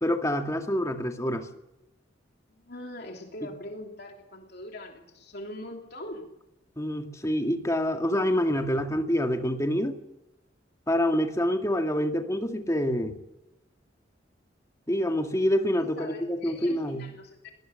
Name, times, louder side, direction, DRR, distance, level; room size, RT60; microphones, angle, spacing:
voice 1, 0.0-1.5 3.4-3.5 6.8-10.0 10.9-13.2 14.9-17.0, equal, 15° left, 5 dB, 2.1 m, -26 dB
voice 2, 2.5-6.3 15.8-17.5, left 1 dB, 60° left, 2 dB, 3.2 m, -42 dB
24.0 x 19.5 x 6.7 m, 0.90 s
head